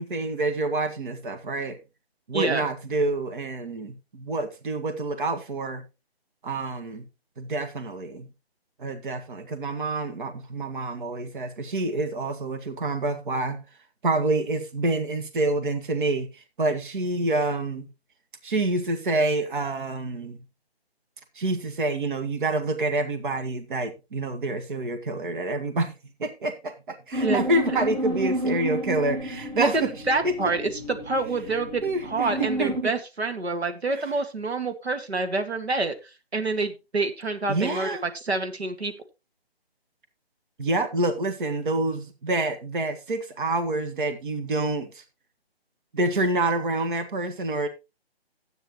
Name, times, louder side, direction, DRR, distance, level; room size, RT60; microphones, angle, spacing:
voice 1, 0.0-1.8 2.3-5.8 6.4-7.0 7.4-8.3 8.8-13.6 14.0-17.9 18.4-20.4 21.4-25.9 26.2-29.9 30.2-30.3 31.8-32.9 33.9-34.1 37.5-38.0 40.6-45.0 45.9-47.7, right 2 dB, 50° right, 1.8 m, -27 dB
sound 1, 27.1-32.8, equal, 30° right, 2.2 m, -31 dB
voice 2, 30.1-35.9 36.3-37.9 38.1-38.9, right 3 dB, 85° right, 2.0 m, -27 dB
13.0 x 9.1 x 3.1 m
figure-of-eight pair, 155°, 31 cm